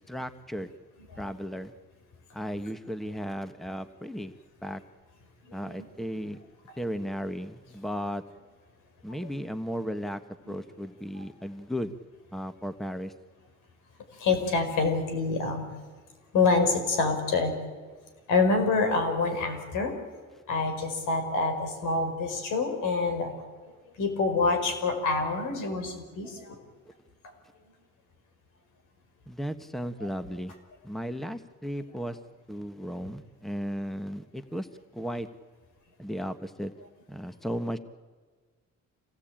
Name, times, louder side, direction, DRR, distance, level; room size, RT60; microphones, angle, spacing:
voice 1, 0.1-0.7 1.2-1.7 2.3-4.3 4.6-4.8 5.5-6.4 6.8-8.2 9.0-10.2 10.5-11.9 12.3-13.1 29.3-30.5 30.8-32.2 32.5-34.7 34.9-35.3 36.0-36.7 37.1-37.8, equal, ahead, 10 dB, 1.3 m, -35 dB
voice 2, 14.1-15.7 16.3-17.6 18.3-20.0 20.5-23.3 24.0-26.6 30.0-30.1, left 4 dB, 85° left, 6 dB, 5.0 m, -26 dB
27.0 x 18.0 x 8.9 m, 1.5 s
cardioid pair, 90°, 30 cm